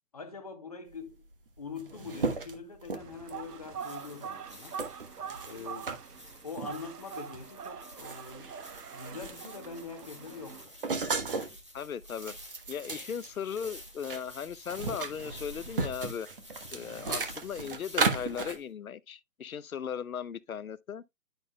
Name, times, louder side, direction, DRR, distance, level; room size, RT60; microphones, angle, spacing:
voice 1, 0.1-1.2 1.6-4.8 5.4-5.9 6.4-8.6 8.9-10.7, left 5 dB, 25° left, 0.9 m, -43 dB
sound 1, 1.3-1.4 1.6-3.5 4.1-4.3 4.8-6.0 6.5-6.8 7.3-7.5 7.8-9.7 10.0-11.6 12.0-14.2 14.5-18.6, right 4 dB, 35° right, 1.2 m, -35 dB
sound 2, 3.0-10.6, right 7 dB, 75° right, 1.0 m, -44 dB
sound 3, 3.7-18.6, left 1 dB, 20° right, 0.8 m, -52 dB
voice 2, 11.7-12.3 12.7-16.3 16.7-21.0, left 7 dB, 60° left, 0.7 m, -37 dB
10.5 x 6.6 x 2.2 m
hypercardioid pair, 170°, 48 cm